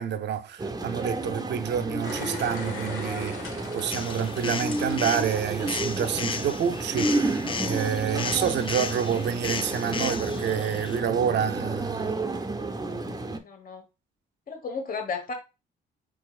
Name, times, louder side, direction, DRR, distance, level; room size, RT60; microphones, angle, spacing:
voice 1, 0.0-12.2, right 8 dB, 60° right, 0.6 m, -28 dB
sound 1, 0.6-13.4, right 2 dB, 20° right, 0.6 m, -31 dB
sound 2, 2.0-6.4 6.8-6.9, left 4 dB, 85° left, 1.2 m, -40 dB
sound 3, 3.9-11.0, left 5 dB, 25° left, 0.4 m, -35 dB
voice 2, 13.4-13.8 14.5-15.3, left 5 dB, 45° left, 1.3 m, -33 dB
4.7 x 4.0 x 2.4 m
cardioid pair, 90°, 20 cm